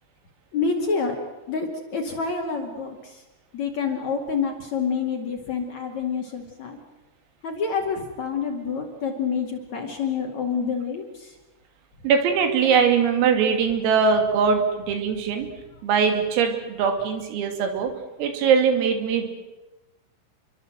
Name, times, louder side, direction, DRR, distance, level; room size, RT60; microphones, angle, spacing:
voice 1, 0.5-1.2 1.5-3.2 3.5-6.8 7.4-11.3, left 5 dB, 45° left, 2 dB, 2.8 m, -28 dB
voice 2, 12.0-15.5 15.8-17.9 18.2-19.3, right 6 dB, 85° right, 5 dB, 5.5 m, -21 dB
28.0 x 23.5 x 7.8 m, 1.1 s
omnidirectional pair, 5.9 m